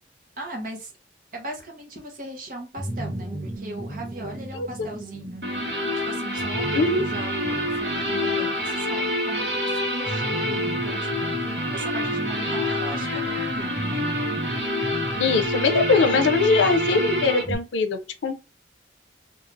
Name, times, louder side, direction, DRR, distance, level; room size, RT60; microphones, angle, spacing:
voice 1, 0.4-0.9 1.3-5.8 6.1-14.0, right 1 dB, 45° right, 0.8 m, -38 dB
sound 1, 2.8-17.5, right 1 dB, 5° right, 1.1 m, -35 dB
sound 2, 5.4-17.4, left 1 dB, 70° right, 1.0 m, -27 dB
voice 2, 15.2-18.4, left 4 dB, 90° left, 0.5 m, -21 dB
3.1 x 2.3 x 2.5 m
head